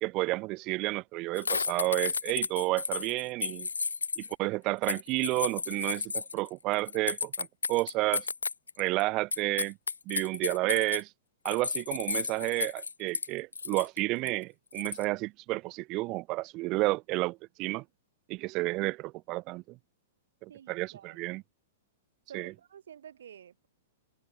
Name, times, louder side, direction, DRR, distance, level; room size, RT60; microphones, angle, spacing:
voice 1, 0.0-3.7 4.2-8.3 8.8-9.8 10.1-11.1 11.4-17.8 18.3-19.8 20.4-21.4 22.3-22.5, right 22 dB, 40° right, 0.7 m, -31 dB
sound 1, 1.4-4.3 4.8-9.0 9.3-11.0 11.5-13.3 13.5-14.0 14.3-14.4 14.7-15.0, left 5 dB, 90° left, 0.4 m, -33 dB
voice 2, 20.5-21.2 22.3-23.7, right 9 dB, 70° right, 4.0 m, -50 dB
hypercardioid pair, 115°, 0 cm